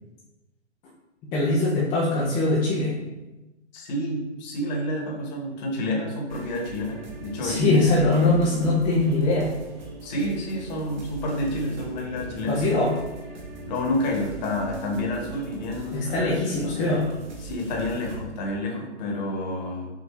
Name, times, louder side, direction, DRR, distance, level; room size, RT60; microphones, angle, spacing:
voice 1, 1.3-2.9 7.4-9.5 12.5-12.9 15.9-17.1, left 2 dB, 15° left, -6 dB, 0.5 m, -22 dB
voice 2, 3.7-8.2 10.0-12.6 13.7-16.3 17.4-19.9, left 1 dB, 40° left, 0 dB, 1.2 m, -29 dB
sound 1, 6.3-18.3, right 3 dB, 40° right, 1.0 m, -40 dB
6.0 x 2.5 x 3.1 m, 1.0 s
hypercardioid pair, 130°, 35 cm